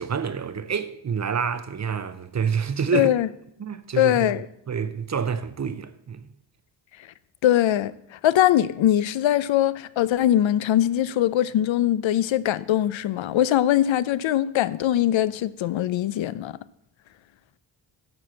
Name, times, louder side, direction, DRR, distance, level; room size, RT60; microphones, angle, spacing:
voice 1, 0.0-3.1 3.6-4.3 4.7-6.2, right 6 dB, 35° right, 0.6 m, -28 dB
voice 2, 2.9-3.3 4.0-4.5 7.4-16.6, left 12 dB, 75° left, 0.5 m, -22 dB
9.8 x 4.4 x 7.6 m
wide cardioid pair, 125°, 47 cm